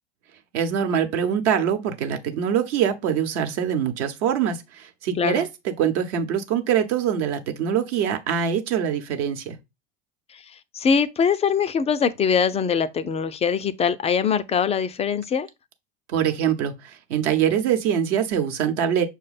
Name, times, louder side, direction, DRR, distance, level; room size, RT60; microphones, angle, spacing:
voice 1, 0.5-9.6 16.1-19.0, right 8 dB, 65° right, 1.0 m, -24 dB
voice 2, 10.7-15.5, left 6 dB, 20° left, 0.3 m, -22 dB
6.1 x 2.2 x 4.0 m
hypercardioid pair, 80°, 38 cm